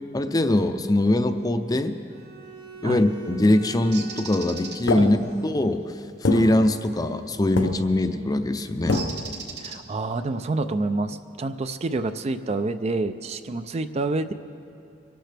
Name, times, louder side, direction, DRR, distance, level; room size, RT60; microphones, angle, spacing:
voice 1, 0.1-2.0 2.8-5.8 6.2-9.0, left 1 dB, 20° left, 9 dB, 0.5 m, -22 dB
Bowed string instrument, 2.1-5.6, right 5 dB, 80° right, 3.8 m, -44 dB
Bird, 3.9-4.8 7.4-7.6 8.9-10.1, right 5 dB, 60° right, 1.2 m, -37 dB
sound 1, 4.9-5.7 6.2-7.3 7.6-8.1 8.9-9.4, left 2 dB, 90° left, 0.8 m, -27 dB
voice 2, 5.0-5.4 9.6-14.3, right 2 dB, 35° right, 10 dB, 0.4 m, -28 dB
24.5 x 12.0 x 3.4 m, 2.5 s
head